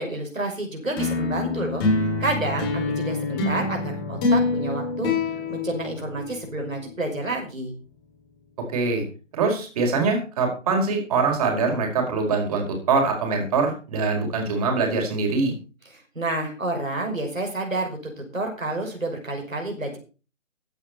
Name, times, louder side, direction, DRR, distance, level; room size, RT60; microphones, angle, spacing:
voice 1, 0.0-1.8 2.2-5.1 5.5-7.7 15.9-18.0 18.3-20.0, right 2 dB, 85° right, 2 dB, 5.9 m, -29 dB
sound 1, 1.0-6.6, left 3 dB, 20° left, 3.8 m, -25 dB
voice 2, 8.7-9.0 9.3-15.5, right 4 dB, 30° right, 2 dB, 4.8 m, -23 dB
15.5 x 9.9 x 4.4 m, 0.34 s
figure-of-eight pair, 150°, 39 cm